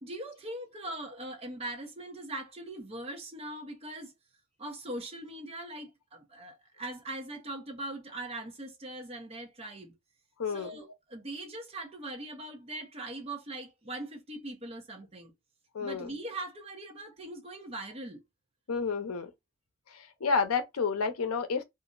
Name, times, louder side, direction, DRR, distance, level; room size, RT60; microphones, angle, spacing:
voice 1, 0.0-4.1 4.6-9.9 10.5-15.3 15.8-18.2, right 1 dB, 25° right, 0.6 m, -41 dB
voice 2, 10.4-10.7 15.7-16.1 18.7-19.3 19.9-21.6, left 5 dB, 80° left, 0.6 m, -30 dB
2.5 x 2.0 x 3.7 m
head